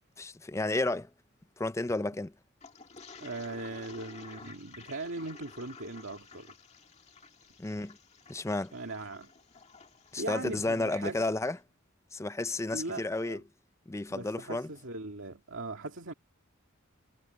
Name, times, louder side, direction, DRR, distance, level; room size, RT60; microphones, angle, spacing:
voice 1, 0.2-1.1 1.6-2.3 7.6-8.0 8.3-8.7 10.1-11.6 12.1-13.4 13.9-14.7, left 2 dB, 15° left, 0.5 m, -32 dB
Toilet flush, 2.6-11.2, left 4 dB, 35° left, 2.0 m, -52 dB
voice 2, 3.2-6.5 8.7-9.3 10.2-11.3 12.7-13.4 14.1-16.1, right 2 dB, 70° right, 2.2 m, -39 dB
head